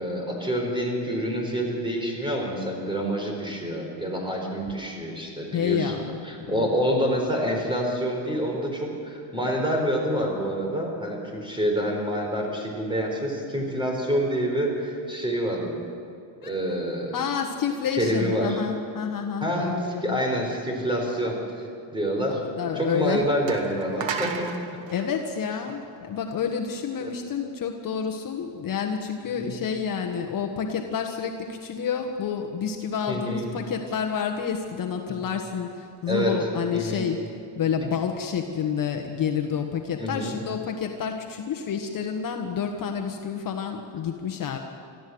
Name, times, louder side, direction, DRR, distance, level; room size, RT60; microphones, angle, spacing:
voice 1, 0.0-15.8 16.4-17.1 17.9-18.6 19.4-21.7 21.9-22.4 22.7-24.5 27.0-27.1 29.4-29.6 33.1-33.5 36.1-36.3 36.7-37.1 40.0-40.4, equal, 10° right, 1 dB, 4.6 m, -27 dB
voice 2, 5.5-6.0 6.4-6.7 16.4-16.5 17.1-20.2 22.3-23.2 24.9-37.2 37.6-44.6, left 7 dB, 45° left, 4 dB, 1.4 m, -29 dB
sound 1, 22.9-23.0 23.5-26.3, right 6 dB, 70° right, 1.9 m, -34 dB
23.0 x 14.5 x 7.9 m, 2.5 s
cardioid pair, 130°, 47 cm